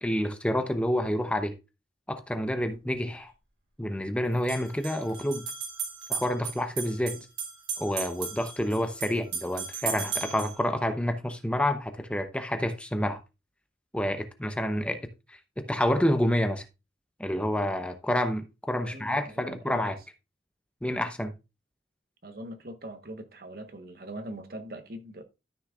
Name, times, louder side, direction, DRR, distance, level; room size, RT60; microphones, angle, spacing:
voice 1, 0.0-1.5 2.1-3.3 3.8-5.5 6.1-7.3 7.8-13.2 13.9-15.0 15.3-16.6 17.2-20.0 20.8-21.3, left 1 dB, 5° left, 0.7 m, -28 dB
sound 1, 2.7-2.8 4.3-10.6, right 5 dB, 90° right, 3.4 m, -36 dB
voice 2, 18.8-20.0 22.2-25.2, right 1 dB, 55° right, 1.2 m, -42 dB
13.0 x 6.3 x 2.4 m
head